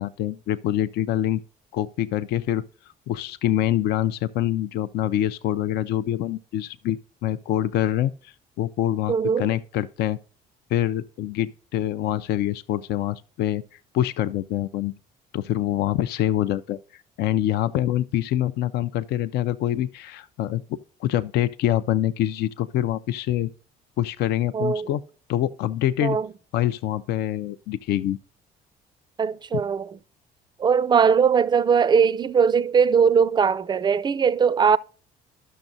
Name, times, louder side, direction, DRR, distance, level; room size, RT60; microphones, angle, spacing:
voice 1, 0.0-1.4 1.7-2.6 3.1-10.2 10.7-14.9 15.3-23.5 24.0-25.0 25.3-26.2 26.5-28.2, left 12 dB, 75° left, 0.4 m, -25 dB
voice 2, 9.1-9.5 24.5-24.9 26.0-26.3 29.2-29.9 30.6-34.8, right 6 dB, 25° right, 0.4 m, -20 dB
12.0 x 6.3 x 2.6 m
cardioid pair, 110°, 17 cm